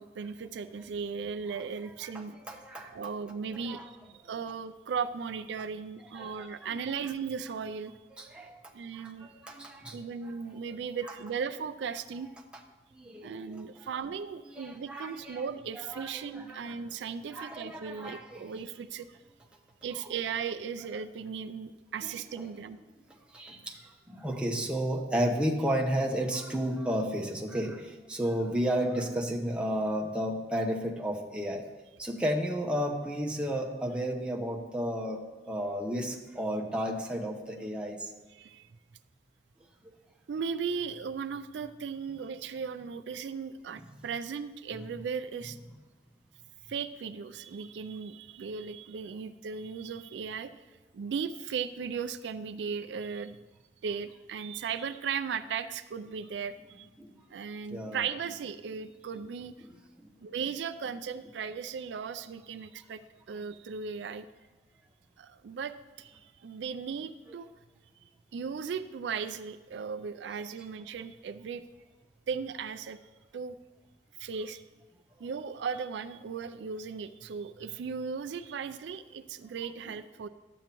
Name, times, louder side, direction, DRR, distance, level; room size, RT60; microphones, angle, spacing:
voice 1, 0.0-2.4 2.9-4.0 4.2-7.9 8.7-9.3 9.9-12.3 13.2-19.2 19.8-22.8 38.3-38.7 40.3-45.6 46.7-50.6 50.9-53.4 53.8-56.9 57.3-59.5 60.2-63.0 63.3-64.3 65.2-67.5 68.3-71.6 72.3-73.0 73.3-73.6 74.2-74.6 75.2-80.3, right 6 dB, 80° right, 11 dB, 0.4 m, -37 dB
voice 2, 2.0-2.9 3.5-3.9 6.1-6.8 8.1-8.5 8.9-10.3 12.9-13.7 14.6-15.4 15.7-16.7 17.3-18.5 22.0-22.5 23.3-31.7 32.0-38.1 44.0-44.1 57.0-57.1 57.7-58.0 60.0-60.1, equal, 5° right, 0 dB, 0.8 m, -33 dB
12.0 x 8.0 x 3.0 m, 1.2 s
head